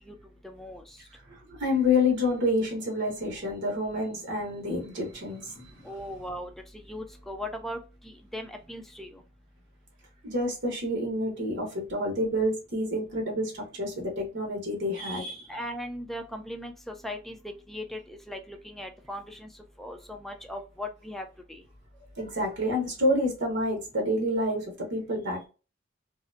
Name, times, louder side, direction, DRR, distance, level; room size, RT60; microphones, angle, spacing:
voice 1, 0.4-0.8 5.8-6.5 6.9-7.8 8.0-9.2 15.5-17.4 17.7-19.5 19.8-21.6, left 1 dB, ahead, 0.4 m, -38 dB
voice 2, 1.3-5.8 10.2-15.4 22.2-25.5, left 1 dB, 60° right, 0.9 m, -28 dB
2.7 x 2.0 x 2.5 m
head